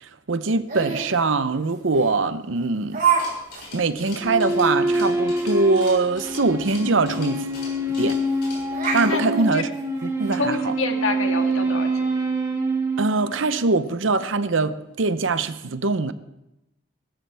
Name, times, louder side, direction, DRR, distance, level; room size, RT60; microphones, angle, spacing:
voice 1, 0.0-3.0 3.7-7.5 8.0-8.2 8.9-9.7 10.0-10.8 13.0-16.1, right 3 dB, 75° right, 13 dB, 0.7 m, -23 dB
Laughter, 0.7-1.1 1.9-2.0 2.9-3.2 3.5-3.6 4.1-4.2 4.6-4.7 6.7-6.8 7.1-7.2 8.1-8.4 8.7-10.3, right 6 dB, 45° right, 5.6 m, -25 dB
sound 1, 3.1-9.0, left 2 dB, 55° left, 6.5 m, -42 dB
sound 2, 4.2-13.9, right 1 dB, 15° right, 1.0 m, -25 dB
voice 2, 10.4-12.0, left 4 dB, 90° left, 4 dB, 1.7 m, -27 dB
19.0 x 14.0 x 3.4 m, 0.89 s
head